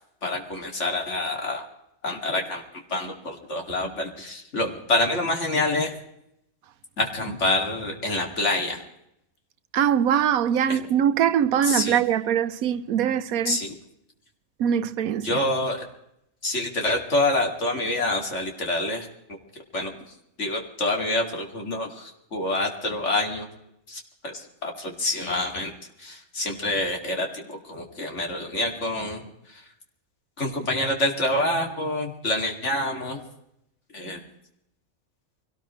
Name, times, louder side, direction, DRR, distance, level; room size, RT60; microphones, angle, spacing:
voice 1, 0.2-1.6 2.0-2.6 2.9-5.9 7.0-8.8 10.7-10.8 11.6-12.0 13.4-13.7 15.2-15.8 16.4-19.1 19.7-20.0 20.4-23.5 23.9-25.7 26.0-29.2 29.5-29.6 30.4-33.2 33.9-34.2, left 2 dB, 55° left, 2.7 m, -27 dB
voice 2, 9.7-13.6 14.6-15.4, right 9 dB, 85° right, 1.2 m, -22 dB
24.0 x 18.0 x 3.1 m
omnidirectional pair, 1.5 m